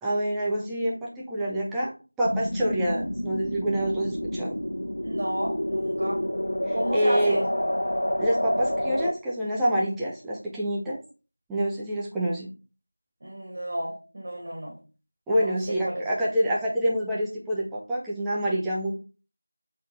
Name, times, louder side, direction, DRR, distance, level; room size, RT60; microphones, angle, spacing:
voice 1, 0.0-4.5 6.7-7.4 8.2-11.0 11.5-12.5 15.3-18.9, equal, 5° right, -6 dB, 0.4 m, -27 dB
sound 1, 2.2-9.1, equal, 60° left, 1.1 m, -29 dB
voice 2, 5.0-6.2 6.7-7.4 13.2-14.7 15.4-15.5 15.8-16.0, right 1 dB, 25° right, -5 dB, 2.2 m, -32 dB
8.0 x 3.7 x 3.2 m, 0.35 s
figure-of-eight pair, 175°, 0 cm